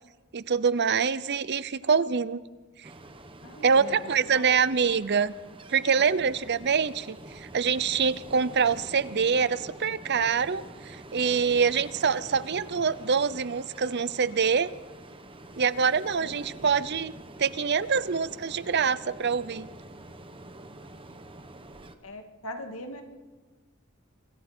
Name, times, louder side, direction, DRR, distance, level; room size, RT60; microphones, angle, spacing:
voice 1, 0.3-2.4 2.8-2.9 3.6-5.3 5.7-14.7 15.6-17.1 17.4-19.7, right 6 dB, 55° right, 16 dB, 0.7 m, -25 dB
Ocean, 2.8-22.0, right 1 dB, 25° right, 1.3 m, -46 dB
voice 2, 3.4-4.5 6.0-6.1 16.2-16.7 22.0-23.0, left 1 dB, 90° left, 5 dB, 2.4 m, -41 dB
26.5 x 22.5 x 4.5 m, 1.3 s
head